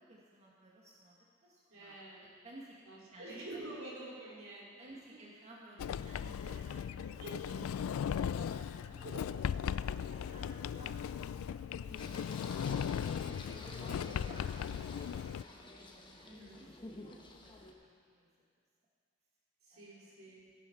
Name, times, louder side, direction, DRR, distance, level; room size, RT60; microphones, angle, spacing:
voice 1, 0.0-2.0 2.4-2.8 3.1-3.6 4.8-7.7 8.0-9.1 9.8-12.8 13.5-17.0 17.2-17.5 17.8-17.9 18.1-18.3 19.7-20.3, right 1 dB, 35° right, -5 dB, 1.8 m, -56 dB
voice 2, 1.7-2.3 2.9-5.2 7.0-7.6 9.0-9.3 14.0-14.3 16.2-16.7 19.6-20.4, right 2 dB, 80° right, -5 dB, 3.6 m, -49 dB
Sliding door, 5.8-15.4, left 8 dB, 80° left, 0.3 m, -38 dB
Singing, 12.0-17.7, left 2 dB, 25° left, 1.1 m, -50 dB
17.0 x 7.5 x 5.8 m, 2.1 s
head